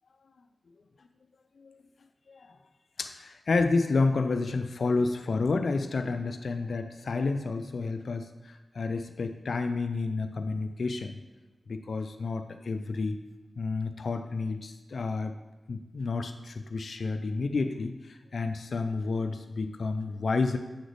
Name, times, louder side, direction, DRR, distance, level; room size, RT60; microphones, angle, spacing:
voice 1, 3.0-11.1 11.7-13.2 13.6-15.3 15.7-20.6, left 3 dB, 65° left, 8 dB, 0.3 m, -30 dB
7.8 x 3.9 x 3.3 m, 1.1 s
wide cardioid pair, 80°, 0 cm